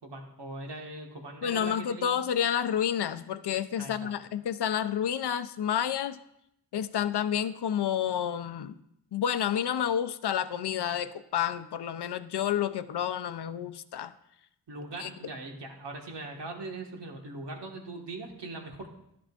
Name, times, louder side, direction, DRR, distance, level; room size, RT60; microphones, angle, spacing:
voice 1, 0.0-2.2 3.8-4.2 14.7-18.9, right 2 dB, 75° right, 1 dB, 1.7 m, -41 dB
voice 2, 1.4-6.2 6.7-8.8 9.1-14.1 15.0-15.1, left 9 dB, 70° left, 12 dB, 0.6 m, -30 dB
11.5 x 11.5 x 2.5 m, 0.79 s
wide cardioid pair, 90°, 41 cm